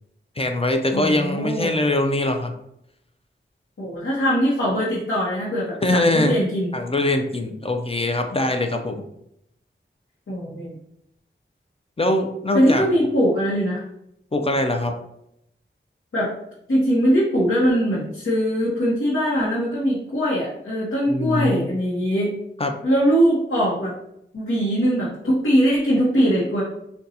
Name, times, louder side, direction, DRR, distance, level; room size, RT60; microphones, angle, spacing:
voice 1, 0.4-2.5 5.8-6.4 6.7-9.0 12.0-12.9 14.3-15.0 21.1-21.7 22.6-22.7, left 1 dB, 30° left, 5 dB, 0.4 m, -22 dB
voice 2, 0.9-1.7 3.8-6.7 10.3-10.7 12.5-13.8 16.1-16.3 16.7-22.3 22.8-23.9 24.3-26.6, equal, 90° left, -7 dB, 0.8 m, -21 dB
3.9 x 2.2 x 2.7 m, 0.77 s
wide cardioid pair, 60°, 20 cm